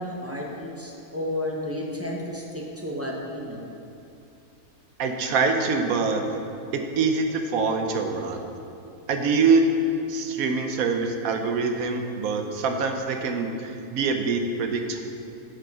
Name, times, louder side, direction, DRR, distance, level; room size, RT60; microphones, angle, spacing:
voice 1, 0.0-3.7, left 1 dB, 10° right, -2 dB, 0.8 m, -32 dB
voice 2, 5.0-6.2 6.7-8.4 9.1-9.6 10.1-15.0, right 4 dB, 75° right, 5 dB, 1.2 m, -24 dB
9.9 x 6.8 x 4.8 m, 2.7 s
omnidirectional pair, 1.5 m